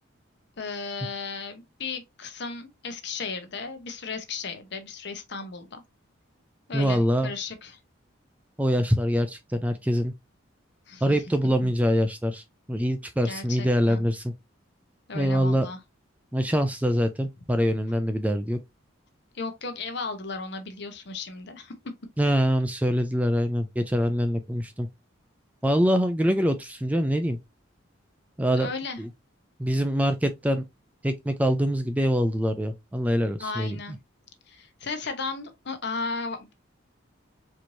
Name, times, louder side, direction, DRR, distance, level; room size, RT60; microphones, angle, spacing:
voice 1, 0.6-5.8 6.7-7.8 10.9-11.0 11.6-11.7 13.2-14.0 15.1-15.8 19.3-21.7 28.5-29.0 33.4-34.0 34.5-36.5, left 4 dB, 55° left, 0.9 m, -35 dB
voice 2, 6.7-7.3 8.6-10.1 11.0-14.3 15.1-15.7 16.3-18.6 22.2-24.9 25.6-27.4 28.4-28.7 29.0-29.1 29.6-30.6 31.0-33.8, equal, 5° right, 0.4 m, -24 dB
4.3 x 3.0 x 2.6 m
head